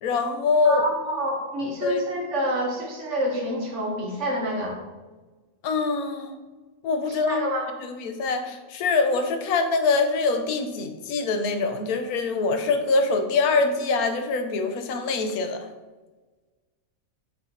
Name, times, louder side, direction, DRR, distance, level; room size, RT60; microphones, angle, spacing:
voice 1, 0.0-0.8 1.8-2.0 5.6-6.4 6.8-7.5 7.8-15.7, left 4 dB, 85° left, 7 dB, 1.2 m, -24 dB
voice 2, 0.6-4.8 7.1-7.7, equal, 55° right, -1 dB, 1.5 m, -28 dB
5.9 x 3.8 x 4.2 m, 1.3 s
omnidirectional pair, 1.5 m